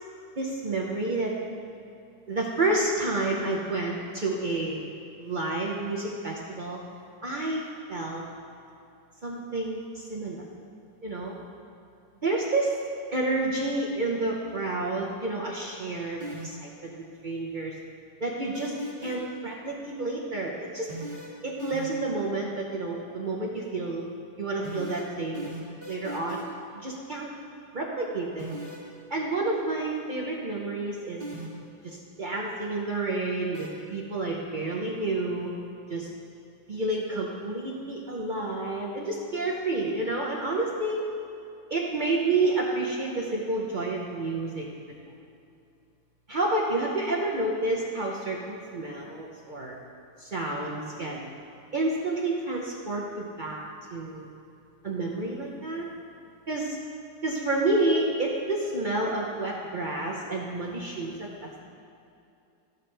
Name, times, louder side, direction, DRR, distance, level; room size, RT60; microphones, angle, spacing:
voice 1, 0.4-1.3 2.3-4.8 5.2-6.8 7.2-8.2 9.2-10.4 11.0-11.3 12.2-12.7 13.1-16.9 17.2-17.7 18.2-20.9 21.4-24.1 24.4-25.5 25.9-26.4 26.7-27.3 27.7-28.5 29.1-31.2 31.8-35.5 35.9-36.1 36.7-41.0 41.7-45.1 46.3-49.8 50.2-51.3 51.7-53.6 53.9-54.3 54.8-55.9 56.5-56.8 57.2-61.6, right 2 dB, 65° right, -3 dB, 0.4 m, -29 dB
sound 1, 16.2-16.7 18.5-19.4 20.9-22.1 24.6-26.6 28.4-28.9 31.2-31.7 33.5-33.7, right 2 dB, 30° right, 2.5 m, -38 dB
14.5 x 5.3 x 3.3 m, 2.6 s
omnidirectional pair, 2.1 m